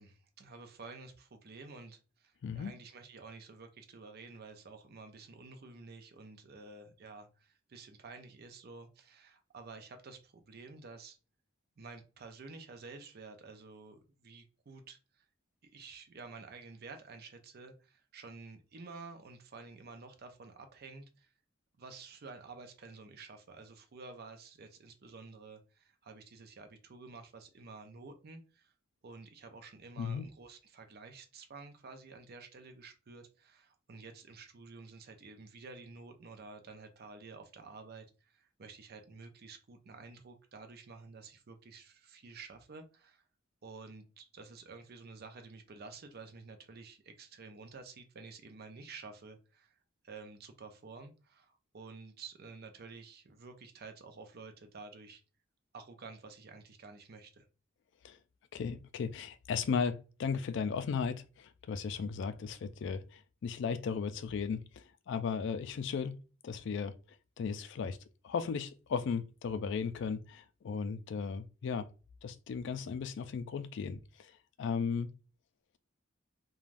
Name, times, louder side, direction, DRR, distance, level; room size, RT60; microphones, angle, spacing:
voice 1, 0.0-11.2 11.8-15.3 15.6-21.3 21.8-28.7 29.0-43.2 43.6-49.7 50.0-55.2 55.7-57.5, right 4 dB, 50° right, 0.5 m, -51 dB
voice 2, 58.5-66.2 66.4-67.0 67.4-68.0 68.2-71.9 72.2-74.0 74.6-75.1, left 6 dB, 65° left, 0.3 m, -36 dB
3.2 x 2.3 x 2.5 m
head